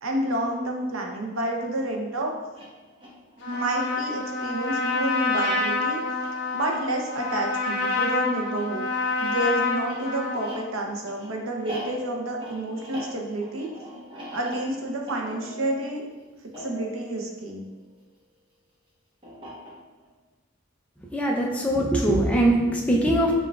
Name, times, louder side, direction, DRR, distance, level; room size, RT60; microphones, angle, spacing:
voice 1, 0.0-2.3 3.5-6.0 6.5-8.9 9.2-13.7 14.3-16.0 16.6-17.7, right 1 dB, 85° right, 1 dB, 0.6 m, -29 dB
sound 1, 2.4-18.2 19.2-20.1, equal, 25° right, 0.8 m, -43 dB
Trumpet, 3.4-10.6, left 3 dB, 60° left, 0.8 m, -27 dB
voice 2, 21.1-23.3, right 1 dB, 5° left, -2 dB, 0.4 m, -22 dB
6.8 x 2.3 x 2.3 m, 1.2 s
head